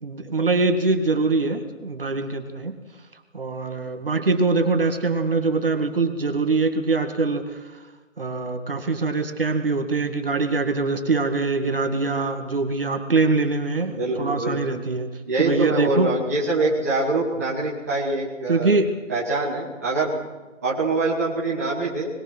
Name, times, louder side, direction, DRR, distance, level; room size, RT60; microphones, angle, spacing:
voice 1, 0.0-2.8 3.3-7.6 8.2-15.1 15.4-16.1 18.5-18.9, right 3 dB, 45° right, 6 dB, 2.0 m, -23 dB
voice 2, 13.9-14.6 15.3-18.7 19.1-20.2 20.6-22.1, right 2 dB, 10° right, -7 dB, 1.6 m, -24 dB
22.0 x 20.5 x 6.1 m, 1.2 s
figure-of-eight pair, 175°, 39 cm